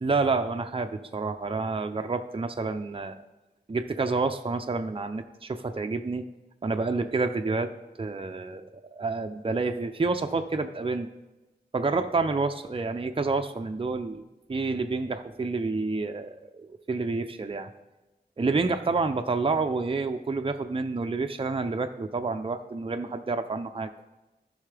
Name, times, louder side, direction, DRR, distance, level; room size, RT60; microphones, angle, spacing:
voice 1, 0.0-3.2 3.7-6.3 6.6-7.7 8.0-8.6 8.9-11.1 11.7-14.2 14.5-17.7 18.4-23.9, right 3 dB, 30° right, 7 dB, 0.5 m, -29 dB
14.0 x 5.6 x 3.4 m, 1.0 s
wide cardioid pair, 65°, 17 cm